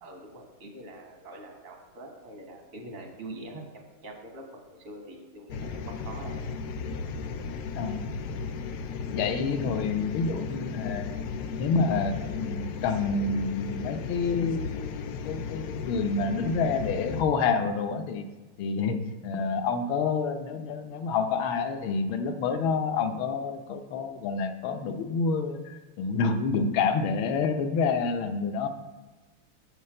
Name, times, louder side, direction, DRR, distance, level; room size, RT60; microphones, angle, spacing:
voice 1, 0.0-6.4, right 2 dB, 75° right, 2 dB, 2.5 m, -44 dB
sound 1, 5.5-17.2, left 5 dB, 85° left, 0.9 m, -35 dB
voice 2, 9.1-11.2 11.6-18.2 18.6-28.7, left 4 dB, 70° left, 7 dB, 1.5 m, -28 dB
10.0 x 4.2 x 7.7 m, 1.2 s
omnidirectional pair, 2.4 m